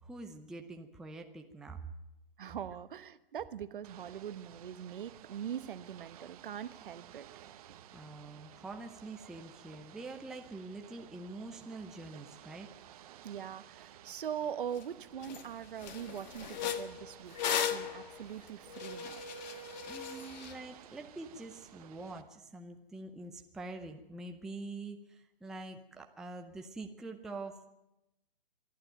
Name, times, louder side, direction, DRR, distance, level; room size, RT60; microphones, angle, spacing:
voice 1, 0.0-1.8 7.9-12.7 19.9-27.7, right 2 dB, ahead, 3 dB, 0.6 m, -45 dB
voice 2, 2.4-7.3 7.7-7.8 13.2-19.2, right 9 dB, 55° right, 14 dB, 1.1 m, -42 dB
Ocean / Boat Water vehicle, 3.8-22.2, right 11 dB, 35° right, 1.2 m, -55 dB
sound 1, 14.8-14.9 15.2-15.4 15.8-20.5, left 8 dB, 45° left, 1.6 m, -37 dB
24.5 x 12.0 x 9.1 m, 0.94 s
hypercardioid pair, 140°, 31 cm